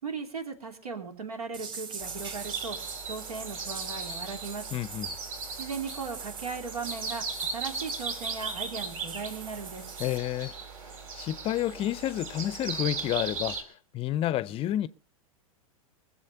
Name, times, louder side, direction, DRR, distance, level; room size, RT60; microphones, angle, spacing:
voice 1, 0.0-4.6 5.5-7.2 7.5-9.8, right 5 dB, 85° right, 2.8 m, -37 dB
sound 1, 1.5-10.2, right 5 dB, 25° right, 2.1 m, -43 dB
sound 2, 2.0-13.6, right 4 dB, 70° right, 4.0 m, -37 dB
voice 2, 4.7-5.1 10.0-10.6 11.1-13.7 13.9-14.9, left 13 dB, 30° left, 0.5 m, -30 dB
20.5 x 7.6 x 5.6 m
hypercardioid pair, 105°, 19 cm